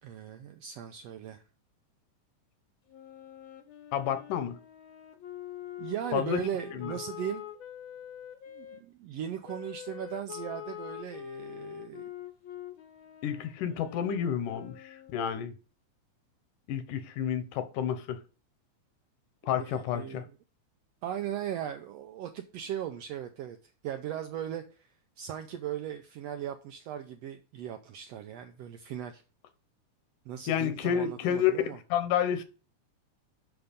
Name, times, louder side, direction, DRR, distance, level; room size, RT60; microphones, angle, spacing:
voice 1, 0.0-1.4 5.8-7.4 8.5-12.0 19.4-20.3 21.0-29.2 30.2-31.8, right 10 dB, 80° right, 1.5 m, -38 dB
Wind instrument woodwind instrument, 2.9-8.8 9.5-15.3, left 11 dB, 60° left, 1.3 m, -45 dB
voice 2, 3.9-4.6 6.1-6.4 6.8-6.9 13.2-15.5 16.7-18.2 19.5-20.2 30.5-32.4, left 9 dB, 80° left, 2.4 m, -30 dB
7.0 x 5.8 x 5.1 m
omnidirectional pair, 3.6 m